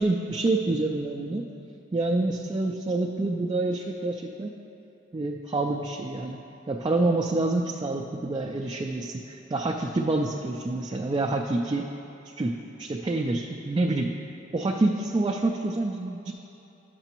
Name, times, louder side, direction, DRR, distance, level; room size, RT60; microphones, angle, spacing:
voice 1, 0.0-1.4 1.9-4.5 5.1-6.4 6.7-11.9 12.2-14.2 14.5-16.3, right 2 dB, 25° right, 1 dB, 0.3 m, -27 dB
11.5 x 6.8 x 2.9 m, 3.0 s
head